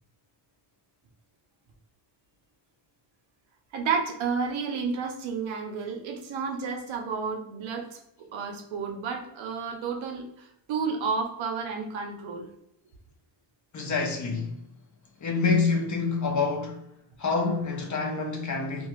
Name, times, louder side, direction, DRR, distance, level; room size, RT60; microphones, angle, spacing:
voice 1, 3.7-8.0 8.3-12.5, right 5 dB, 90° right, 0.7 m, -31 dB
voice 2, 13.7-14.6 15.2-16.9 17.2-18.9, left 4 dB, 40° left, 0.7 m, -27 dB
2.5 x 2.3 x 3.0 m
cardioid pair, 95°, 45 cm